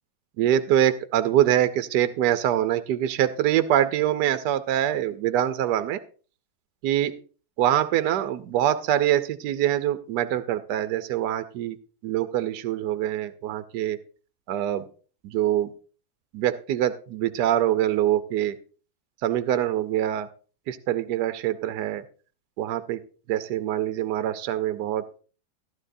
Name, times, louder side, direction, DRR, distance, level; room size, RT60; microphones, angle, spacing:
voice 1, 0.4-6.0 6.8-7.1 7.6-11.8 12.0-14.0 14.5-14.9 15.2-15.7 16.3-18.5 19.2-20.3 20.7-22.0 22.6-23.0 23.3-25.2, right 11 dB, 70° right, 11 dB, 1.1 m, -24 dB
12.5 x 12.0 x 2.6 m, 0.37 s
omnidirectional pair, 2.1 m